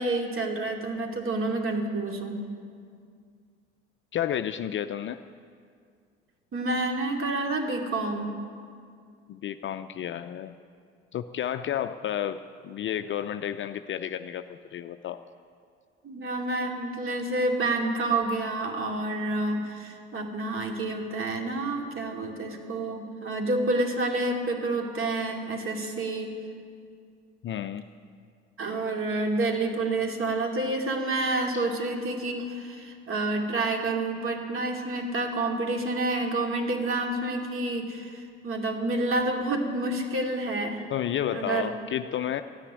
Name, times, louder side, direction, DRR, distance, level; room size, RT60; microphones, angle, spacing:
voice 1, 0.0-2.4 6.5-8.3 16.0-26.3 28.6-40.9 41.3-41.7, right 2 dB, 35° right, 2 dB, 2.6 m, -29 dB
voice 2, 4.1-5.2 9.3-10.5 11.1-15.2 27.4-27.8 31.5-31.7 40.9-42.4, left 10 dB, 35° left, 10 dB, 0.5 m, -31 dB
14.0 x 9.9 x 9.3 m, 2.2 s
hypercardioid pair, 65°, 35 cm